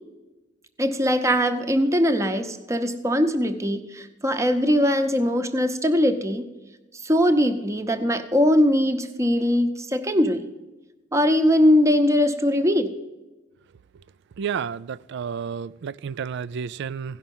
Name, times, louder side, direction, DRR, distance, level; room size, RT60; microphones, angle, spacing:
voice 1, 0.8-6.4 7.0-10.5 11.1-12.9, equal, 15° right, 0.8 m, -21 dB
voice 2, 14.4-17.2, right 7 dB, 60° right, 0.4 m, -31 dB
16.5 x 5.8 x 5.4 m
head